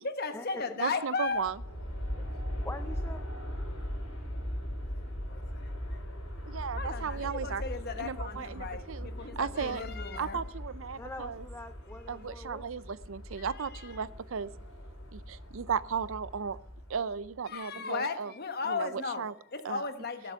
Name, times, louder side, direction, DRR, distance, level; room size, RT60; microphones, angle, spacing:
voice 1, 0.0-1.5 2.2-2.7 5.2-6.0 6.7-10.4 10.9-11.1 13.3-14.1 17.4-20.3, left 4 dB, 45° left, 1.2 m, -36 dB
voice 2, 0.8-1.5 6.5-7.6 8.0-9.1 9.4-9.8 10.2-11.4 12.1-14.5 15.1-16.6 16.9-18.3 18.7-18.9 19.2-19.3 19.7-19.8, right 6 dB, 65° right, 0.5 m, -35 dB
Aircraft, 1.3-17.4, equal, 80° left, 6.1 m, -39 dB
voice 3, 2.6-3.6 11.0-12.7, left 2 dB, 10° left, 0.5 m, -44 dB
18.0 x 7.9 x 5.7 m
head